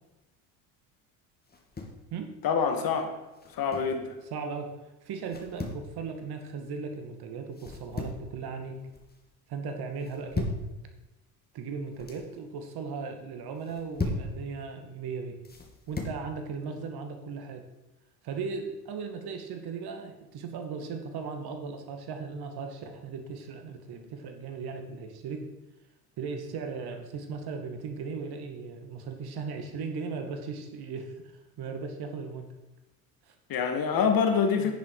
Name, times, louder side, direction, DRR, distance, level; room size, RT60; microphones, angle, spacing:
sound 1, 1.5-2.0 3.3-4.0 5.3-5.8 7.5-8.3 8.7-9.2 10.0-10.7 11.7-12.2 13.6-14.3 15.4-16.2, left 2 dB, 20° left, 2.7 m, -36 dB
voice 1, 2.4-3.1 3.5-4.2 33.5-34.7, left 6 dB, 50° left, 6 dB, 2.2 m, -26 dB
voice 2, 4.3-4.7 5.0-8.8 9.5-10.5 11.5-15.4 15.9-17.6 18.2-25.5 26.2-31.3 31.6-32.5 33.3-33.4 34.6-34.7, right 5 dB, 55° right, 6 dB, 2.3 m, -37 dB
10.5 x 9.8 x 5.0 m, 1.0 s
hypercardioid pair, 75°, 46 cm